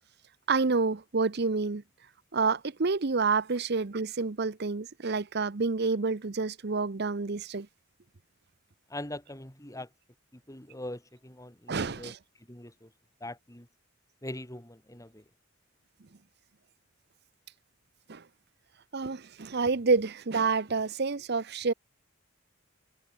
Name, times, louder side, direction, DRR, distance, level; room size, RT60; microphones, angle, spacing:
voice 1, 0.5-1.8 2.3-7.7 11.7-12.2 18.1-18.2 18.9-21.7, right 4 dB, 50° right, 0.8 m, -28 dB
voice 2, 8.9-9.9 10.3-12.1 12.5-12.9 13.2-13.7 14.2-15.2, left 1 dB, 15° left, 3.4 m, -42 dB
head